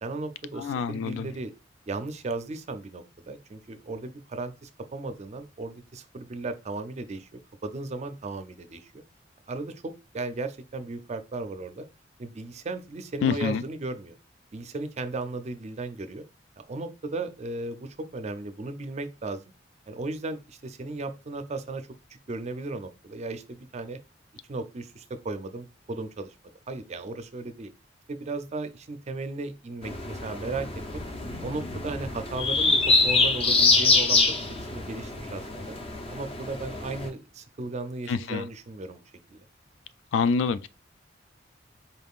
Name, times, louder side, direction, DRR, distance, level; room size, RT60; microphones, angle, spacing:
voice 1, 0.0-1.5 1.9-7.3 7.6-9.0 9.5-11.9 12.2-14.1 14.5-16.2 16.7-19.4 19.9-24.0 24.5-26.3 26.7-27.7 28.1-31.0 31.4-35.8 36.1-39.0 39.3-39.4, right 3 dB, 40° right, 0.4 m, -36 dB
voice 2, 0.6-1.3 13.2-13.6 38.1-38.4 40.1-40.7, left 5 dB, 90° left, 0.3 m, -26 dB
sound 1, 29.8-37.1, left 3 dB, 30° left, 0.6 m, -25 dB
4.1 x 3.5 x 2.4 m
head